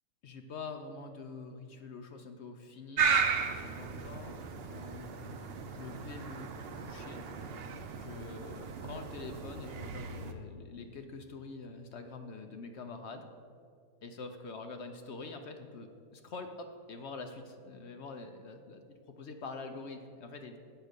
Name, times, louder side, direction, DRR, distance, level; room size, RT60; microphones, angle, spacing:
voice 1, 0.2-3.2 3.5-6.5 6.8-7.3 8.0-13.3 14.0-18.8 19.1-20.6, left 4 dB, 60° left, 6 dB, 0.8 m, -45 dB
sound 1, 3.0-10.3, right 5 dB, 55° right, 0.7 m, -35 dB
8.0 x 6.2 x 6.6 m, 2.3 s
omnidirectional pair, 1.5 m